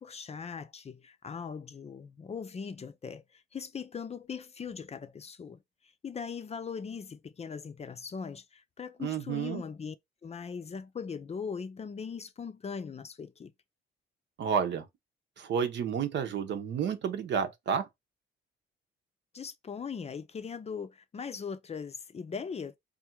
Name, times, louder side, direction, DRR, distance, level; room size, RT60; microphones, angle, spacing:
voice 1, 0.0-10.0 10.2-13.5 19.3-22.8, left 6 dB, 30° left, 0.5 m, -40 dB
voice 2, 9.0-9.6 14.4-14.8 15.4-17.9, right 7 dB, 65° right, 0.9 m, -30 dB
3.5 x 2.6 x 4.5 m
cardioid pair, 90°, 20 cm